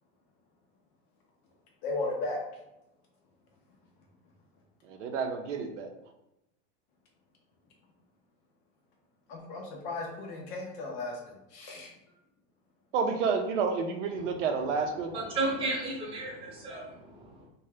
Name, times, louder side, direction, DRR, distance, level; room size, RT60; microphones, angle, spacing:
voice 1, 1.8-2.4 9.3-11.9, left 2 dB, 30° left, 0 dB, 0.4 m, -35 dB
voice 2, 4.8-5.9 12.9-15.1, right 5 dB, 90° right, 5 dB, 0.6 m, -30 dB
voice 3, 15.1-17.5, right 2 dB, 15° right, -3 dB, 0.6 m, -33 dB
2.7 x 2.2 x 3.3 m, 0.88 s
supercardioid pair, 160°, 35 cm